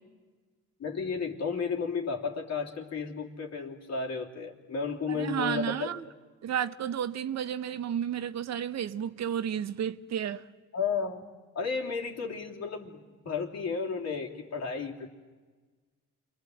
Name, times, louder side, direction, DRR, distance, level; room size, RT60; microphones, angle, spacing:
voice 1, 0.8-6.1 10.7-11.2 11.5-15.1, left 5 dB, 60° left, 3.2 m, -33 dB
voice 2, 5.1-6.0 6.4-10.4, right 9 dB, 60° right, 1.0 m, -32 dB
28.5 x 23.0 x 7.9 m
cardioid pair, 90°, 30 cm